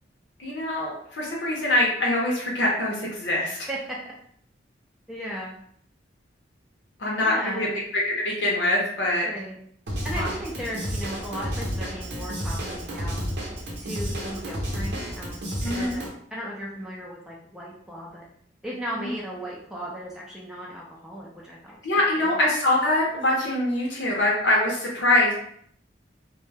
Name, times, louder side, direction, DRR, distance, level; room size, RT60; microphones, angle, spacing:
voice 1, 0.4-3.7 7.0-7.7 7.9-9.3 10.1-10.3 15.6-16.0 19.0-19.1 21.8-25.3, left 1 dB, 75° left, -3 dB, 0.7 m, -24 dB
voice 2, 3.7-4.1 5.1-5.6 7.2-7.8 9.2-9.6 10.0-13.2 13.8-18.2 18.6-21.8 22.2-22.3, equal, 5° right, -5 dB, 0.4 m, -36 dB
Drum kit / Drum, 9.9-16.1, equal, 65° right, 0.6 m, -31 dB
2.2 x 2.0 x 3.2 m, 0.65 s
head